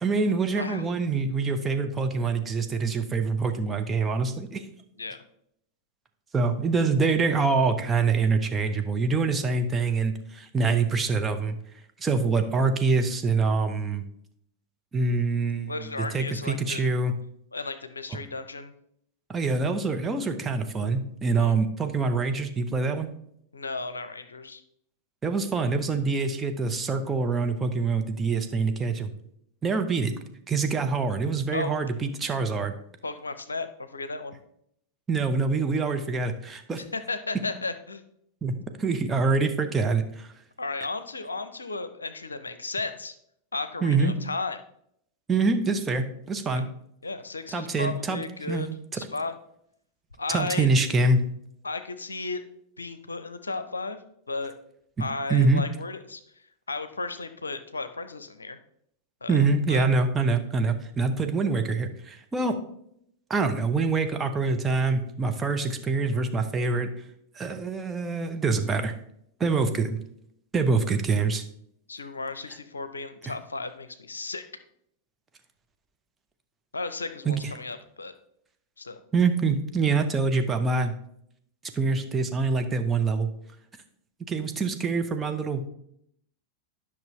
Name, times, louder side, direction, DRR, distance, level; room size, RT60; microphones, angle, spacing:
voice 1, 0.0-4.6 6.3-11.6 12.0-14.0 14.9-15.7 16.1-17.1 19.3-23.1 25.2-29.1 29.6-30.1 30.5-32.7 35.1-36.8 38.4-38.5 38.8-40.3 43.8-44.1 45.3-46.7 47.5-49.0 50.3-51.2 55.0-55.6 59.3-62.6 63.3-66.9 67.4-68.9 69.4-70.0 70.5-71.4 77.3-77.4 79.1-80.9 81.7-83.3 84.3-85.7, right 4 dB, 15° right, 5 dB, 0.8 m, -25 dB
voice 2, 15.7-16.9 17.5-18.7 21.4-21.6 23.5-24.6 31.5-31.7 33.0-34.4 36.9-38.0 40.6-43.2 43.5-44.6 47.0-48.7 48.9-49.3 50.2-50.7 51.6-52.4 52.8-54.0 54.3-54.5 55.0-56.2 56.7-58.6 59.2-59.9 71.9-74.4 76.7-78.1 78.8-79.0, left 3 dB, 75° left, 11 dB, 0.6 m, -34 dB
10.5 x 5.9 x 3.2 m, 0.72 s
figure-of-eight pair, 90°, 0 cm